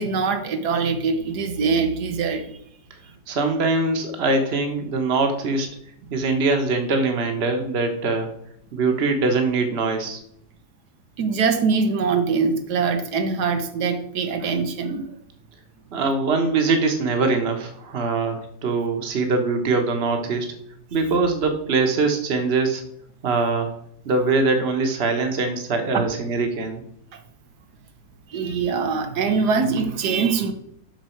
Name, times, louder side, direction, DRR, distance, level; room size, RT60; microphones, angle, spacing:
voice 1, 0.0-2.5 11.2-15.1 25.9-26.0 27.1-27.2 28.3-30.5, right 5 dB, 90° right, 7 dB, 1.5 m, -23 dB
voice 2, 3.3-5.7 6.1-8.3 8.7-10.2 15.9-20.5 20.9-22.8 23.2-23.7 24.0-26.8, right 3 dB, 45° right, 5 dB, 1.3 m, -22 dB
7.9 x 6.1 x 4.5 m, 0.70 s
omnidirectional pair, 1.7 m